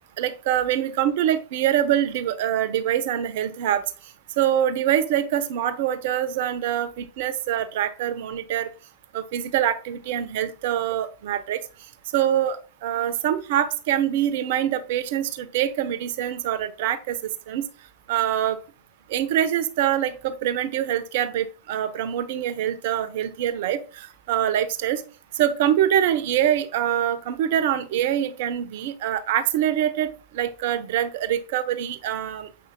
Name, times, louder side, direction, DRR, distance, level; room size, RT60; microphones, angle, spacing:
voice 1, 0.2-3.8 4.4-8.7 9.1-11.6 12.1-17.2 17.5-17.6 18.1-18.6 19.1-25.0 25.4-30.1 30.3-32.5, right 10 dB, 50° right, 11 dB, 0.8 m, -24 dB
7.6 x 5.4 x 2.3 m, 0.36 s
figure-of-eight pair, 90°, 0 cm